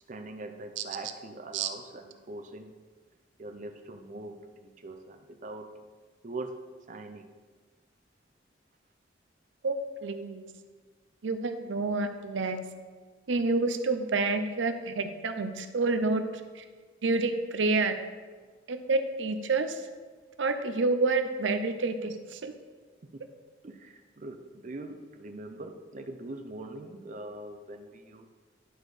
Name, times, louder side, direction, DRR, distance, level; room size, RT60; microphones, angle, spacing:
voice 1, 0.1-2.8 3.4-5.8 6.2-6.6 6.9-7.3 16.2-16.3 23.0-23.2 23.6-28.2, right 2 dB, 40° right, 5 dB, 0.5 m, -42 dB
voice 2, 10.0-10.4 11.2-12.6 13.3-16.3 16.6-16.7 17.0-18.0 18.7-19.8 20.4-22.5, right 3 dB, 80° right, 8 dB, 0.6 m, -28 dB
11.0 x 4.3 x 4.8 m, 1.5 s
head